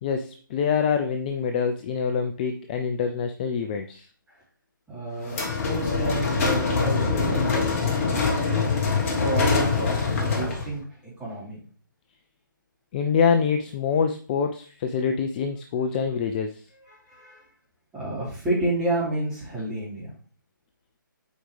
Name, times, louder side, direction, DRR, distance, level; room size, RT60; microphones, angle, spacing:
voice 1, 0.0-4.1 12.9-16.6, left 6 dB, 25° left, 6 dB, 0.4 m, -25 dB
voice 2, 4.9-8.6 9.1-11.6 16.8-17.4 17.9-20.1, right 1 dB, 10° right, -8 dB, 3.3 m, -30 dB
sound 1, 5.3-10.7, left 4 dB, 40° left, 1.6 m, -24 dB
7.9 x 4.7 x 3.3 m, 0.39 s
figure-of-eight pair, 145°, 11 cm